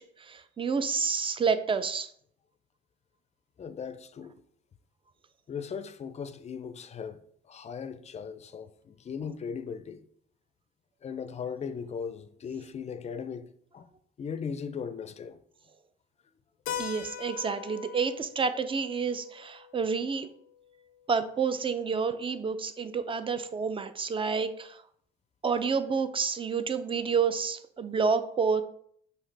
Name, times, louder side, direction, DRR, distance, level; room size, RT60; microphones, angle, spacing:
voice 1, 0.0-2.1 16.8-20.3 21.1-24.8 25.4-28.6, right 5 dB, 25° right, 0.4 m, -29 dB
voice 2, 3.6-4.3 5.5-7.2 7.5-10.0 11.0-13.9 14.2-15.4, left 6 dB, 35° left, 0.4 m, -38 dB
Keyboard (musical), 16.7-21.1, left 9 dB, 85° left, 0.5 m, -42 dB
5.5 x 2.8 x 3.3 m
cardioid pair, 90°, 20 cm